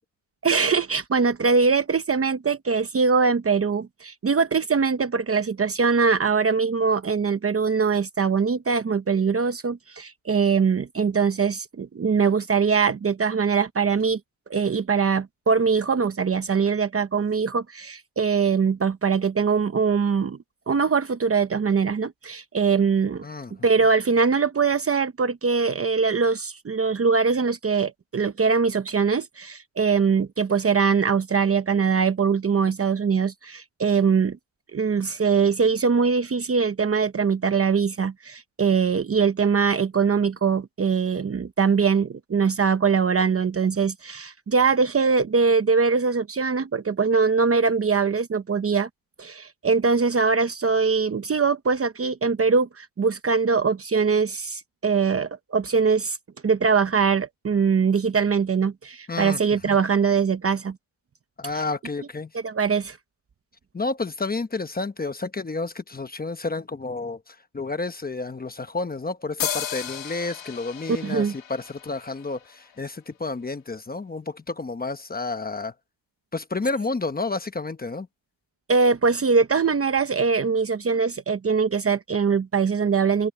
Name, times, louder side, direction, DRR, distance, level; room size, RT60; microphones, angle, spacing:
voice 1, 0.4-14.2 14.5-20.4 20.7-23.2 23.6-34.4 34.7-48.9 49.2-56.2 56.4-60.8 62.4-63.0 71.0-71.3 78.7-83.3, right 5 dB, 30° right, 0.9 m, -22 dB
voice 2, 23.2-23.5 59.1-59.8 61.4-62.3 63.7-75.7 76.3-78.1, left 3 dB, 20° left, 1.0 m, -30 dB
sound 1, 69.4-72.9, left 9 dB, 70° left, 3.0 m, -34 dB
open air
wide cardioid pair, 155°, 47 cm